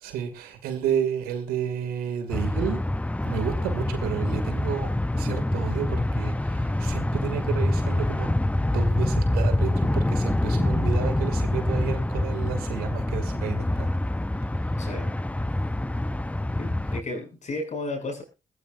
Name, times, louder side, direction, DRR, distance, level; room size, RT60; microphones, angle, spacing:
voice 1, 0.0-2.8 3.2-13.9, right 8 dB, 75° right, 8 dB, 2.5 m, -31 dB
sound 1, 2.3-17.0, left 1 dB, 10° left, 0.8 m, -26 dB
voice 2, 14.8-15.1 16.5-18.2, left 2 dB, 50° left, 3 dB, 7.5 m, -33 dB
21.0 x 14.5 x 2.6 m, 0.30 s
hypercardioid pair, 40°, 16 cm